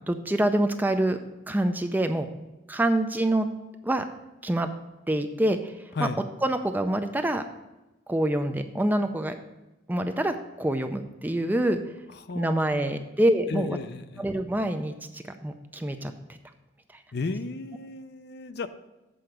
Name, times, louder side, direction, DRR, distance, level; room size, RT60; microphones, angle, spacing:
voice 1, 0.1-1.2 1.5-2.3 2.7-3.5 3.8-4.0 4.4-4.7 5.1-5.7 6.0-6.1 6.4-7.4 8.1-9.4 9.9-11.8 12.3-13.8 14.2-16.1, right 1 dB, 10° right, 7 dB, 0.4 m, -26 dB
voice 2, 12.1-13.0 13.5-14.3 17.1-18.7, left 3 dB, 55° left, 11 dB, 0.5 m, -34 dB
7.7 x 4.7 x 6.5 m, 1.0 s
head